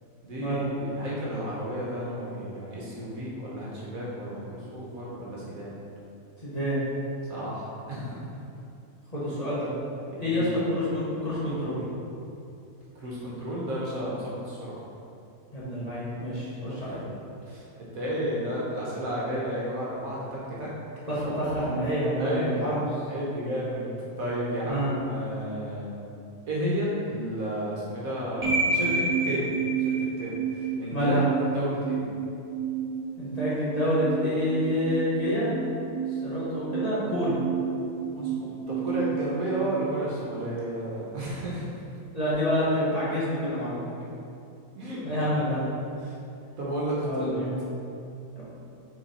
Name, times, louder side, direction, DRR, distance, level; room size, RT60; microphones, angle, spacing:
voice 1, 0.2-5.8 7.3-8.2 10.1-10.5 12.9-14.8 16.8-16.9 17.5-17.6 17.9-20.7 22.2-22.7 23.1-25.9 26.5-29.5 29.8-31.2 31.5-32.0 38.1-41.8 44.7-45.1 46.0-46.1 46.6-47.4, right 1 dB, 60° right, -6 dB, 1.4 m, -32 dB
voice 2, 6.4-6.8 9.1-9.7 10.2-11.8 15.5-17.0 21.1-22.8 24.7-25.0 30.9-31.2 33.2-35.5 36.1-37.3 42.1-43.8 45.0-45.6 47.0-47.6 48.3-48.4, equal, 25° left, -11 dB, 1.4 m, -27 dB
sound 1, 28.4-40.5, right 5 dB, 30° right, 0.9 m, -30 dB
6.2 x 3.7 x 4.2 m, 2.6 s
omnidirectional pair, 1.7 m